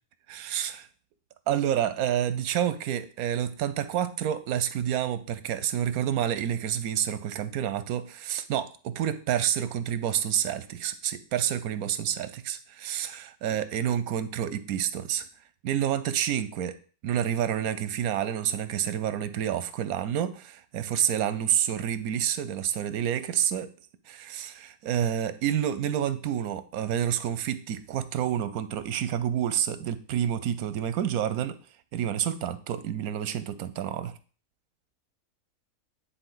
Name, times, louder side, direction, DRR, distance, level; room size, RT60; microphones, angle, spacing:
voice 1, 0.3-0.9 1.5-15.3 15.6-16.8 17.0-23.7 24.1-31.6 31.9-34.2, right 10 dB, 85° right, 13 dB, 1.1 m, -29 dB
10.0 x 4.1 x 3.8 m, 0.38 s
omnidirectional pair, 1.5 m